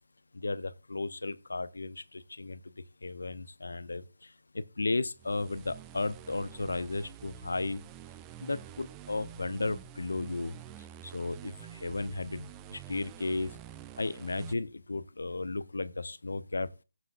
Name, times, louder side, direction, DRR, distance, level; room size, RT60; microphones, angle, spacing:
voice 1, 0.3-2.6 3.0-4.0 4.5-7.8 8.4-10.5 11.1-11.5 11.8-13.5 14.0-16.8, left 3 dB, 60° left, 0.8 m, -34 dB
sound 1, 5.2-14.5, right 11 dB, 15° right, 0.5 m, -48 dB
16.0 x 7.4 x 2.4 m
figure-of-eight pair, 150°, 0 cm